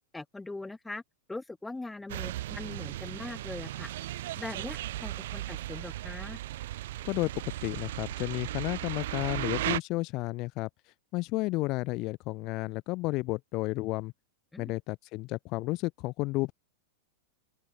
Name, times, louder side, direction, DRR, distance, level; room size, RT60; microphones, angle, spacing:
voice 1, 0.1-1.0 1.3-3.9 4.4-6.4 14.5-14.7, left 2 dB, 5° left, 1.2 m, -41 dB
sound 1, 2.1-9.8, right 15 dB, 70° right, 2.1 m, -36 dB
voice 2, 7.0-10.7 11.1-14.1 14.6-16.5, left 22 dB, 40° left, 0.6 m, -32 dB
open air
supercardioid pair, 150°, 0 cm